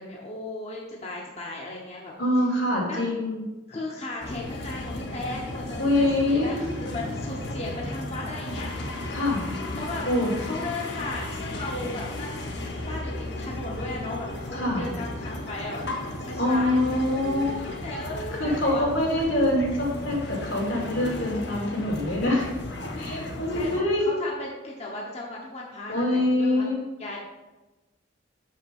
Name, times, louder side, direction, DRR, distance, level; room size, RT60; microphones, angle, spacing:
voice 1, 0.0-2.1 2.8-3.1 3.7-9.2 9.7-10.0 10.4-12.5 12.8-15.8 16.2-18.9 23.5-26.7 27.0-27.2, left 2 dB, 35° left, -2 dB, 0.9 m, -36 dB
voice 2, 2.2-3.4 5.8-6.6 9.1-9.4 10.1-10.3 14.5-14.8 16.4-17.7 18.3-22.5 23.0-24.1 25.9-26.8, left 1 dB, 85° left, -3 dB, 2.8 m, -25 dB
sound 1, 4.2-23.8, left 1 dB, 60° left, 1.1 m, -35 dB
6.5 x 5.6 x 5.2 m, 1.1 s
head